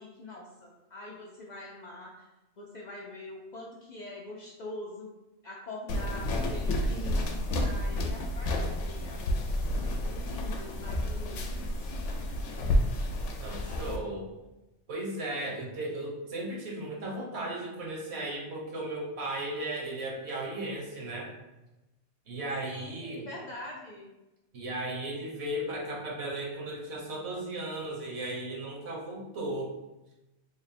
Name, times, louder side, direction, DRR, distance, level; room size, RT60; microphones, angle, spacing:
voice 1, 0.0-2.3 2.6-5.1 5.4-9.5 9.7-11.7 22.6-24.1, left 2 dB, 60° left, -3 dB, 0.5 m, -44 dB
sound 1, 5.9-14.0, left 1 dB, 85° left, 0.9 m, -30 dB
voice 2, 13.4-14.3 14.9-21.3 22.3-23.3 24.5-29.7, right 1 dB, 65° right, -2 dB, 1.1 m, -36 dB
3.5 x 2.1 x 4.1 m, 1.0 s
omnidirectional pair, 1.2 m